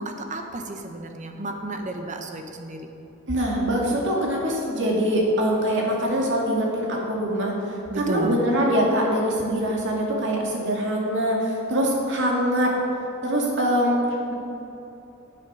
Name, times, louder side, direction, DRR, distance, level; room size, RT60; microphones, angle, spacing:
voice 1, 0.0-2.9 7.9-8.4, right 1 dB, 35° right, 4 dB, 0.9 m, -32 dB
voice 2, 3.3-7.5 8.0-12.7 13.2-14.0 14.3-14.4, equal, 60° right, -1 dB, 2.1 m, -23 dB
9.5 x 7.5 x 6.1 m, 3.0 s
head